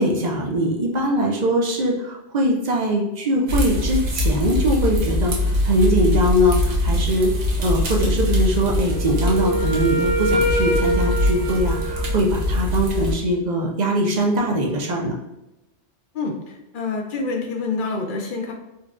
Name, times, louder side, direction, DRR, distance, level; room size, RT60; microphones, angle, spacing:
voice 1, 0.0-7.3 7.6-15.1, equal, 50° right, 0 dB, 0.6 m, -21 dB
sound 1, 3.5-13.1, left 1 dB, 80° right, 1.0 m, -23 dB
Wind instrument woodwind instrument, 8.8-12.7, right 1 dB, 90° left, 1.3 m, -25 dB
voice 2, 16.1-18.5, left 3 dB, 55° left, 1 dB, 0.7 m, -27 dB
3.9 x 2.3 x 2.4 m, 0.95 s
omnidirectional pair, 1.2 m